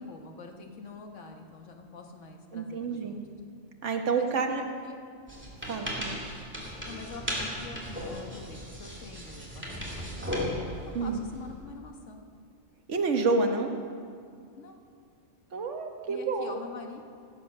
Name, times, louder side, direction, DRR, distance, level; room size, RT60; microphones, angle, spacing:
voice 1, 0.0-3.2 4.1-5.0 6.8-10.4 11.0-12.2 14.6-14.8 16.1-17.0, left 4 dB, 85° left, 3 dB, 1.6 m, -46 dB
voice 2, 2.5-3.2 3.8-4.6 5.7-6.2 10.9-11.2 12.9-13.8 15.5-16.6, right 4 dB, 75° right, 4 dB, 1.5 m, -29 dB
sound 1, 5.3-11.6, equal, 10° right, 2.4 m, -36 dB
16.0 x 7.9 x 6.5 m, 2.3 s
omnidirectional pair, 1.2 m